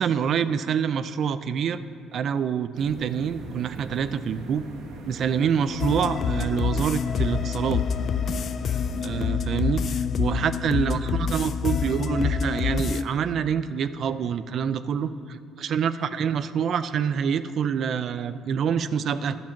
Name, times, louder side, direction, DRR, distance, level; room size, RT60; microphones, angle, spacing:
voice 1, 0.0-1.8 2.1-4.6 5.1-7.8 9.0-19.4, right 7 dB, 50° right, 14 dB, 0.4 m, -26 dB
sound 1, 2.7-9.3, right 3 dB, 75° right, 1.1 m, -42 dB
sound 2, 5.8-13.0, left 6 dB, 40° left, 0.3 m, -26 dB
11.5 x 7.3 x 5.8 m, 2.5 s
cardioid pair, 140°, 0 cm